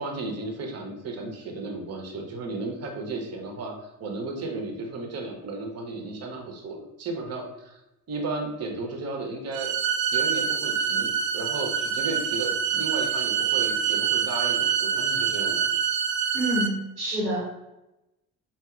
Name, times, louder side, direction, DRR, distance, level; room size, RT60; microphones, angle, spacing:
voice 1, 0.0-7.8 8.1-9.7 10.1-15.6, right 3 dB, 35° right, 2 dB, 0.9 m, -34 dB
sound 1, 9.5-16.7, right 7 dB, 50° right, 0.5 m, -26 dB
voice 2, 16.3-17.4, right 1 dB, 85° right, -6 dB, 0.9 m, -27 dB
4.5 x 2.6 x 2.4 m, 0.93 s
figure-of-eight pair, 50°, 44 cm